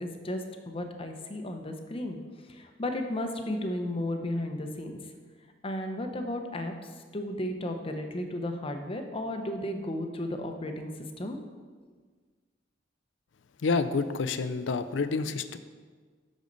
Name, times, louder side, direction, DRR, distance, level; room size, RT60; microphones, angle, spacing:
voice 1, 0.0-2.2 2.5-5.0 5.6-6.7 7.1-10.9 11.2-11.4, left 1 dB, 30° left, 5 dB, 0.7 m, -34 dB
voice 2, 13.6-15.6, left 4 dB, 75° left, 11 dB, 0.5 m, -28 dB
8.4 x 6.4 x 4.0 m, 1.5 s
head